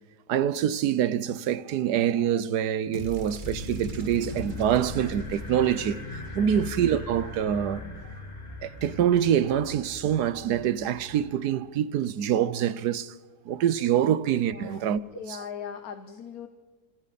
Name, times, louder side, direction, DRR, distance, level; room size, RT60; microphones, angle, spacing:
voice 1, 0.3-6.0 6.3-7.8 8.6-13.1 13.5-15.0 15.3-15.4, right 9 dB, 85° right, 1.4 m, -25 dB
sound 1, 2.9-7.2, right 2 dB, 30° right, 1.9 m, -43 dB
sound 2, 3.4-11.5, left 2 dB, 25° left, 1.9 m, -39 dB
voice 2, 6.4-6.7 14.5-14.8 15.1-16.5, left 7 dB, 65° left, 1.4 m, -39 dB
26.0 x 26.0 x 4.2 m
omnidirectional pair, 1.7 m